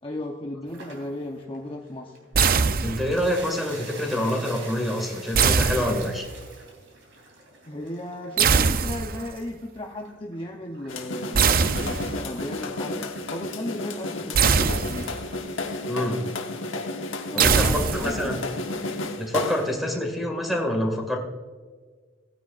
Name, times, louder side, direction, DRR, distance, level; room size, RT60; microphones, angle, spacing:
voice 1, 0.0-2.2 7.7-15.1 17.3-18.2, left 1 dB, 25° left, 1 dB, 0.7 m, -35 dB
sound 1, 0.7-19.0, right 2 dB, 70° right, 3.2 m, -48 dB
sound 2, 2.3-3.3 5.3-6.4 8.4-9.3 11.3-12.4 14.3-15.3 17.4-18.4, right 6 dB, 45° right, 0.5 m, -22 dB
voice 2, 2.8-6.3 15.9-16.2 17.3-18.4 19.2-21.2, left 1 dB, ahead, 2 dB, 2.0 m, -26 dB
sound 3, 10.9-19.8, left 2 dB, 70° left, 1.3 m, -32 dB
17.5 x 9.9 x 2.5 m, 1.5 s
head